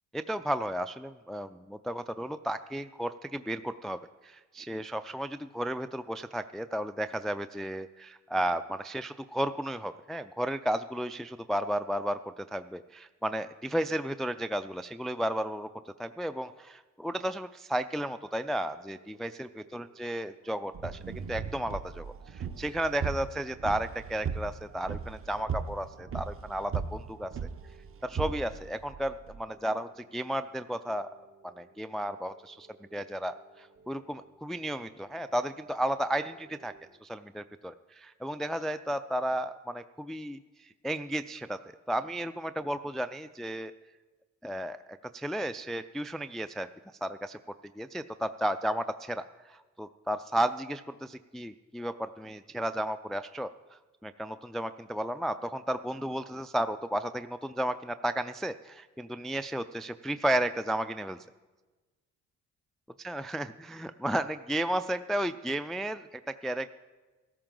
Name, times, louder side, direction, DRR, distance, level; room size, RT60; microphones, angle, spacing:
voice 1, 0.1-27.5 28.0-31.1 31.4-36.7 37.0-41.6 41.9-43.7 44.4-44.8 45.1-46.7 47.0-47.4 47.8-61.2 63.0-66.7, right 1 dB, ahead, 11 dB, 0.3 m, -33 dB
sound 1, 18.4-36.9, right 3 dB, 75° right, 4.0 m, -62 dB
sound 2, 20.7-29.4, right 6 dB, 45° right, 0.9 m, -37 dB
14.5 x 13.5 x 3.8 m, 1.3 s
cardioid pair, 90°, 30 cm